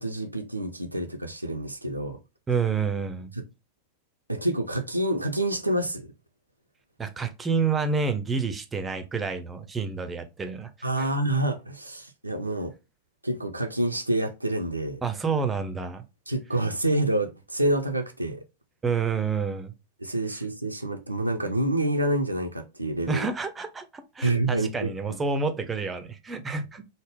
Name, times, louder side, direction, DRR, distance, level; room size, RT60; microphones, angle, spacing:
voice 1, 0.0-2.2 4.3-6.1 10.8-12.7 13.2-15.0 16.3-18.4 20.0-23.3 24.2-25.2, right 1 dB, 85° right, 0.4 m, -27 dB
voice 2, 2.5-3.3 7.0-11.1 15.0-16.0 18.8-19.7 23.1-26.8, right 5 dB, 15° right, 0.5 m, -29 dB
3.4 x 2.1 x 3.5 m
figure-of-eight pair, 90°, 0 cm